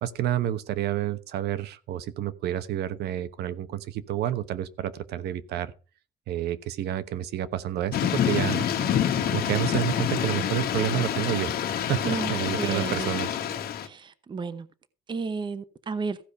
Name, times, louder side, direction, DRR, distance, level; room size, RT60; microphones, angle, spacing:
voice 1, 0.0-5.7 6.3-8.7 9.3-13.4, right 12 dB, 75° right, 1.1 m, -29 dB
Thunder / Rain, 7.9-13.9, left 9 dB, 65° left, 1.5 m, -27 dB
voice 2, 12.6-13.1 13.9-14.0 14.3-14.6 15.1-16.2, right 4 dB, 30° right, 0.9 m, -31 dB
15.0 x 5.0 x 5.6 m
cardioid pair, 110°, 17 cm